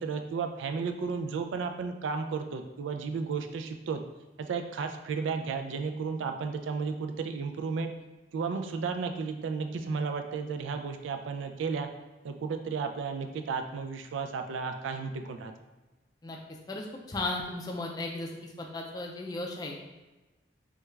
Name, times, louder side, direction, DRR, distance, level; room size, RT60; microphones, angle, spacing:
voice 1, 0.0-4.0 4.4-7.9 8.3-11.9 12.2-15.5, right 5 dB, 85° right, 6 dB, 0.3 m, -33 dB
voice 2, 16.7-19.8, left 2 dB, 20° left, 0 dB, 0.3 m, -36 dB
3.3 x 2.3 x 3.1 m, 1.1 s
head